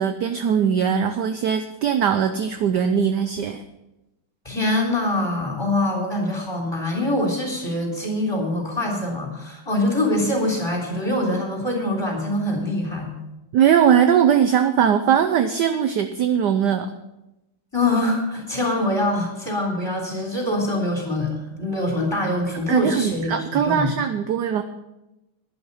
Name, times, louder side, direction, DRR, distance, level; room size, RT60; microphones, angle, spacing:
voice 1, 0.0-3.6 13.5-16.9 22.7-24.6, right 8 dB, 70° right, 8 dB, 1.1 m, -20 dB
voice 2, 4.5-13.2 17.7-23.3 23.6-23.9, left 1 dB, 10° left, 0 dB, 3.4 m, -24 dB
11.5 x 11.0 x 5.5 m, 0.94 s
omnidirectional pair, 2.3 m